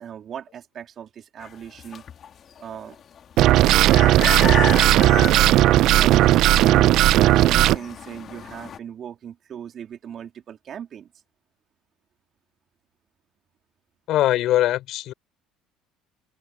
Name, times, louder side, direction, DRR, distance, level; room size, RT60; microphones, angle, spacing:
voice 1, 0.0-2.0 2.6-3.0 3.6-11.1, right 9 dB, 50° right, 3.6 m, -38 dB
sound 1, 1.4-8.8, left 8 dB, 45° left, 3.0 m, -33 dB
sound 2, 3.4-7.8, right 15 dB, 65° right, 0.7 m, -16 dB
voice 2, 14.1-15.1, left 14 dB, 65° left, 5.7 m, -21 dB
hypercardioid pair, 75°, 0 cm